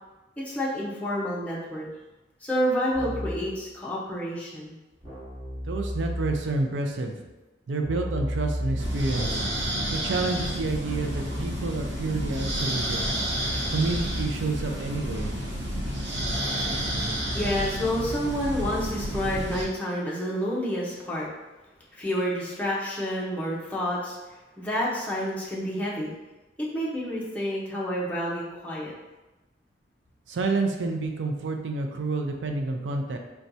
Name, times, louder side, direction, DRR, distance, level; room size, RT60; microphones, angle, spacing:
voice 1, 0.4-1.9 2.4-4.7 17.3-21.3 21.9-24.2 24.6-26.1 26.6-28.9, equal, 10° left, -6 dB, 0.6 m, -29 dB
Keyboard (musical), 2.9-3.6 5.0-6.6 7.8-14.9, equal, 20° right, 1.5 m, -35 dB
voice 2, 5.7-7.2 7.7-9.4 9.9-13.0 13.7-15.3 30.3-33.2, right 3 dB, 90° right, 3 dB, 0.4 m, -29 dB
sound 1, 8.8-19.6, equal, 75° right, 0.8 m, -30 dB
4.2 x 2.3 x 2.6 m, 1.1 s
head